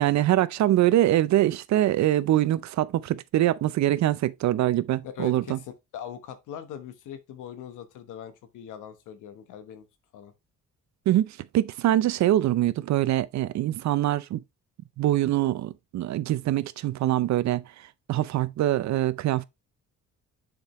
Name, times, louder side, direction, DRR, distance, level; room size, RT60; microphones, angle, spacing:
voice 1, 0.0-5.6 11.1-14.4 15.0-17.6 18.1-19.4, right 13 dB, 65° right, 0.6 m, -24 dB
voice 2, 5.0-9.9 10.1-10.3, left 9 dB, 85° left, 1.2 m, -41 dB
7.1 x 5.2 x 3.0 m
cardioid pair, 90°, 30 cm